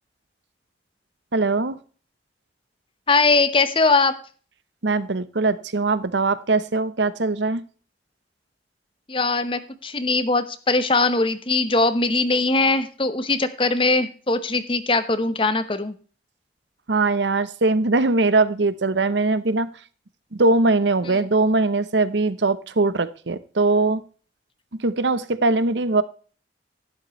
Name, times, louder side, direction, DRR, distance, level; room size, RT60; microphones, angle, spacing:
voice 1, 1.3-1.8 4.8-7.6 16.9-19.7 20.4-24.0 24.8-26.0, right 3 dB, 80° right, 15 dB, 0.9 m, -21 dB
voice 2, 3.1-4.1 9.1-15.9 21.0-21.3, left 3 dB, 30° left, 11 dB, 1.0 m, -21 dB
12.0 x 10.5 x 3.2 m, 0.40 s
head